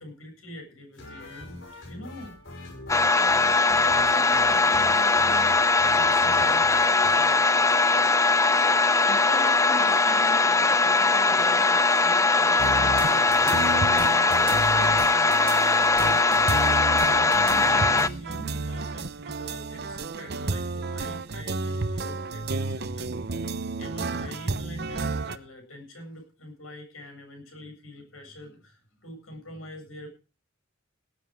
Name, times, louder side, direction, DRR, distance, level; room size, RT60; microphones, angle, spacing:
voice 1, 0.0-2.4 3.1-5.6 5.9-8.7 9.0-15.6 15.9-16.2 16.8-23.5 23.8-30.1, left 1 dB, 85° left, 4 dB, 7.7 m, -43 dB
Wonky Ska, 0.9-7.2, left 1 dB, 65° left, 6.0 m, -43 dB
sound 1, 2.9-18.1, left 3 dB, 15° left, 0.6 m, -21 dB
sound 2, 12.6-25.4, right 3 dB, 55° right, 0.9 m, -32 dB
18.5 x 9.7 x 4.9 m, 0.34 s
head